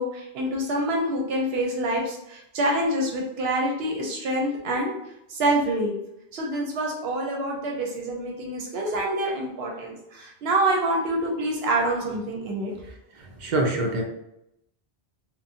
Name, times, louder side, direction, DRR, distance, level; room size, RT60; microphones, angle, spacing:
voice 1, 0.0-4.9 5.3-5.9 6.3-12.7, right 1 dB, 80° right, -1 dB, 0.8 m, -26 dB
voice 2, 13.2-14.0, right 2 dB, 55° right, 1 dB, 0.6 m, -25 dB
2.9 x 2.0 x 2.6 m, 0.81 s
omnidirectional pair, 1.0 m